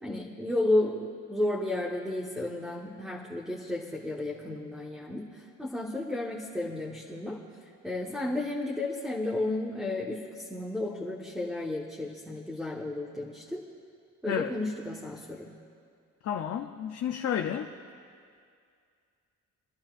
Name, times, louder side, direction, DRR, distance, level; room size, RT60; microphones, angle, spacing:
voice 1, 0.0-7.4 7.8-13.7 14.2-15.5, left 2 dB, ahead, -4 dB, 1.3 m, -32 dB
voice 2, 16.2-17.7, left 9 dB, 55° left, 4 dB, 0.6 m, -31 dB
25.5 x 11.0 x 2.5 m, 2.3 s
cardioid pair, 90°, 30 cm